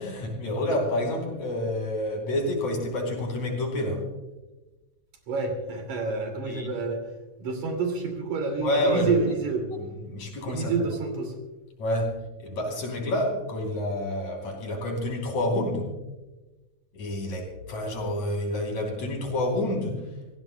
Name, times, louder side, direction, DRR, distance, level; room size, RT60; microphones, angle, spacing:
voice 1, 0.0-4.1 6.5-6.7 8.6-9.3 9.7-10.9 11.8-15.9 16.9-20.0, left 1 dB, 65° left, 1 dB, 4.4 m, -28 dB
voice 2, 5.3-7.0 7.4-9.6 10.5-11.3, right 4 dB, 70° right, 3 dB, 3.8 m, -28 dB
27.5 x 16.5 x 2.2 m, 1.1 s
omnidirectional pair, 3.5 m